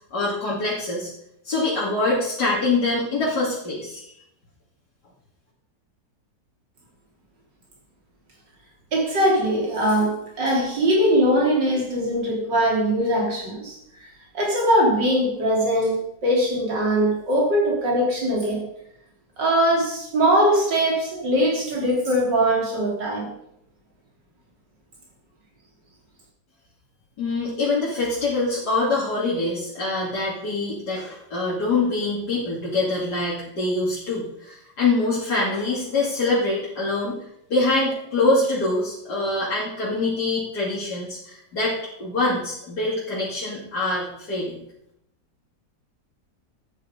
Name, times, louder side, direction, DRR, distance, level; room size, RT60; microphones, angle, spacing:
voice 1, 0.1-1.1 1.4-4.0 27.2-37.2 37.5-44.6, left 2 dB, 65° left, -7 dB, 3.1 m, -24 dB
voice 2, 8.9-13.8 14.3-18.6 19.4-23.3, equal, 85° right, -2 dB, 4.0 m, -21 dB
13.0 x 9.1 x 5.2 m, 0.77 s
omnidirectional pair, 1.9 m